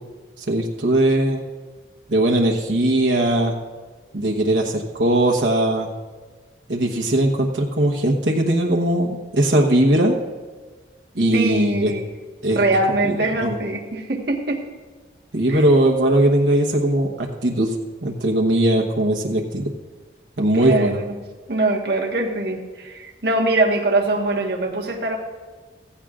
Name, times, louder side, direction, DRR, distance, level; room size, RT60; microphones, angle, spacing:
voice 1, 0.4-1.4 2.1-3.6 4.1-5.9 6.7-10.2 11.1-11.9 12.4-12.6 13.0-13.6 15.3-17.7 18.0-19.7 20.4-21.0, right 1 dB, 85° right, 1 dB, 1.1 m, -19 dB
voice 2, 11.3-12.1 12.5-14.7 15.5-15.6 20.5-21.2 21.5-25.2, right 2 dB, 65° right, 1 dB, 1.5 m, -22 dB
15.5 x 15.0 x 2.5 m, 1.4 s
head